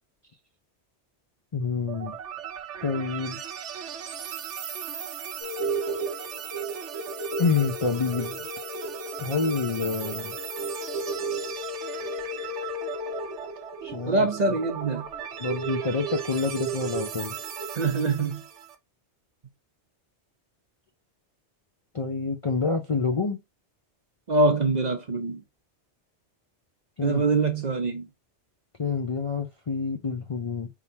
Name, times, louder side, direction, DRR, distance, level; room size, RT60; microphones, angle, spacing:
voice 1, 1.5-2.2 2.8-3.4 7.4-8.4 9.2-10.4 13.8-14.3 15.4-17.3 21.9-23.4 27.0-27.3 28.8-30.7, left 4 dB, 40° left, 0.5 m, -27 dB
sound 1, 1.9-18.8, right 8 dB, 85° right, 1.1 m, -38 dB
sound 2, 5.4-17.9, right 2 dB, 90° left, 1.8 m, -35 dB
voice 2, 14.1-15.0 17.7-18.4 24.3-25.4 27.0-28.1, right 3 dB, 45° right, 0.7 m, -24 dB
4.3 x 3.7 x 2.7 m
omnidirectional pair, 1.2 m